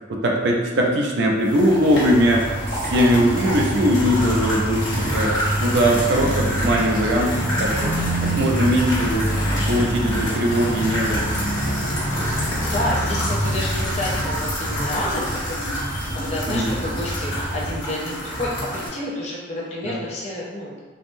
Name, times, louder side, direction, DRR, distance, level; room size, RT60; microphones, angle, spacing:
voice 1, 0.1-2.5 2.8-7.9 8.2-9.3 9.7-11.2 16.5-16.8 19.8-20.0, equal, 60° right, 0 dB, 0.4 m, -20 dB
sound 1, 1.4-18.9, equal, 70° left, 0.9 m, -29 dB
sound 2, 2.1-17.8, right 1 dB, 15° left, 0.9 m, -27 dB
voice 2, 12.6-15.7 16.1-20.8, left 1 dB, 35° left, -6 dB, 0.5 m, -29 dB
3.3 x 2.1 x 2.5 m, 1.3 s
head